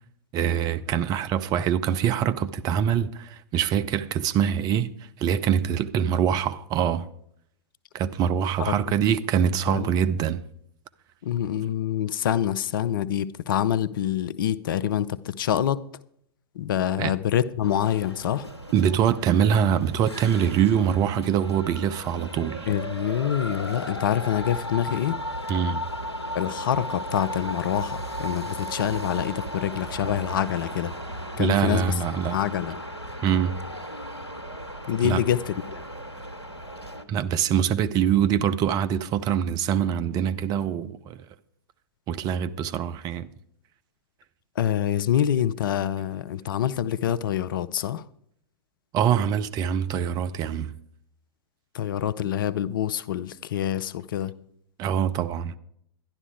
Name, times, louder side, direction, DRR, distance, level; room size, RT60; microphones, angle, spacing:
voice 1, 0.3-4.9 5.2-7.1 7.9-10.4 17.0-17.1 18.7-22.7 25.5-25.8 31.4-32.4 33.2-33.5 35.0-35.2 37.1-41.2 42.1-43.3 48.9-50.7 54.8-55.6, right 8 dB, 30° right, 0.6 m, -24 dB
voice 2, 11.2-15.9 16.6-18.5 22.7-25.2 26.3-30.9 31.4-31.9 32.3-32.8 34.9-35.8 44.6-48.0 51.7-54.3, left 10 dB, 55° left, 0.6 m, -26 dB
sound 1, 17.6-37.0, equal, 85° left, 1.2 m, -36 dB
12.0 x 11.0 x 4.7 m
figure-of-eight pair, 100°, 13 cm